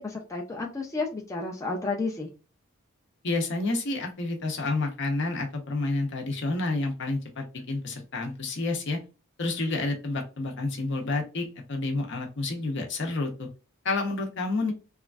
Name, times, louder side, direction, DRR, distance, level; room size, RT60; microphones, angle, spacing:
voice 1, 0.0-2.3, left 3 dB, 15° left, 0 dB, 0.3 m, -31 dB
voice 2, 3.2-9.0 9.4-13.5 13.8-14.7, left 2 dB, 55° left, 3 dB, 0.7 m, -29 dB
3.1 x 2.4 x 2.3 m, 0.32 s
head